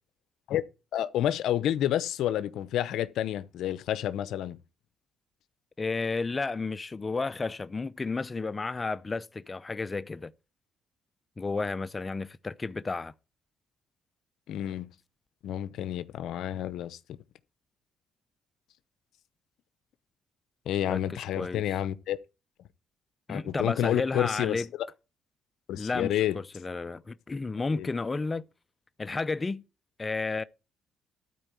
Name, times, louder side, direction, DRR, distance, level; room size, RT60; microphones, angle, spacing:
voice 1, 0.9-4.6 14.5-14.9 15.4-17.0 20.7-22.2 23.3-24.6 25.7-26.4 27.7-27.9, left 12 dB, 80° left, 0.7 m, -29 dB
voice 2, 5.8-10.3 11.4-13.1 20.9-21.6 23.3-24.7 25.8-28.4 29.0-29.6 30.0-30.4, left 3 dB, 25° left, 0.5 m, -32 dB
12.5 x 4.5 x 8.1 m
cardioid pair, 90°, 0 cm